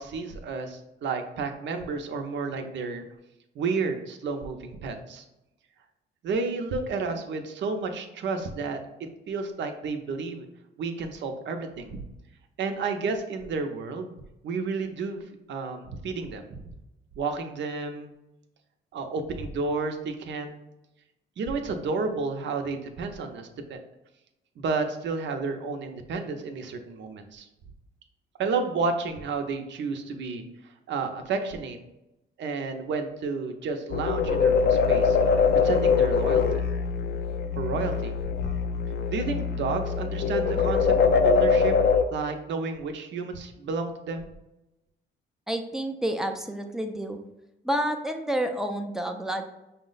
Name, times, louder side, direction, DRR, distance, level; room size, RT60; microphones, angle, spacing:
voice 1, 0.0-3.0 3.5-5.2 6.2-8.8 9.3-10.5 10.8-12.0 12.6-14.1 14.4-16.6 17.2-18.1 18.9-20.5 21.4-23.8 24.6-27.5 28.4-31.8 32.4-35.4 35.6-36.4 37.6-38.5 39.1-41.7 42.1-44.3, right 4 dB, 65° right, 5 dB, 0.7 m, -31 dB
sound 1, 33.9-42.0, left 5 dB, 55° left, 0.4 m, -23 dB
voice 2, 45.5-47.2 47.6-49.4, right 1 dB, ahead, 5 dB, 0.5 m, -29 dB
5.8 x 2.1 x 3.9 m, 0.92 s
cardioid pair, 90°, 20 cm